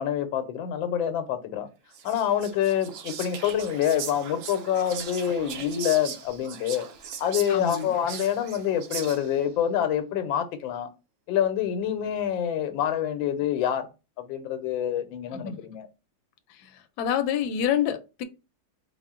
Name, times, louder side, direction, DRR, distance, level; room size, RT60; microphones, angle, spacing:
voice 1, 0.0-1.7 2.0-6.9 7.2-10.9 11.3-13.9 14.2-15.9, left 9 dB, 85° left, 1.4 m, -26 dB
Whispering, 1.9-9.5, right 7 dB, 85° right, 0.7 m, -39 dB
voice 2, 7.5-7.9 15.3-15.5 17.0-18.2, left 9 dB, 70° left, 1.0 m, -27 dB
4.4 x 2.0 x 3.6 m
omnidirectional pair, 2.1 m